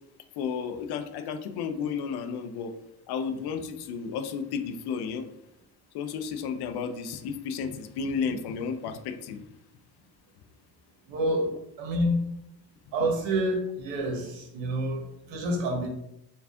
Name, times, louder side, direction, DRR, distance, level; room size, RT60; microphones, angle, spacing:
voice 1, 0.4-2.7 3.1-5.3 5.9-9.4, left 6 dB, 55° left, 9 dB, 0.6 m, -32 dB
voice 2, 11.1-11.5 11.8-12.2 12.9-15.9, right 1 dB, 65° right, 2 dB, 1.1 m, -28 dB
3.4 x 2.4 x 3.5 m, 0.81 s
supercardioid pair, 70°, 47 cm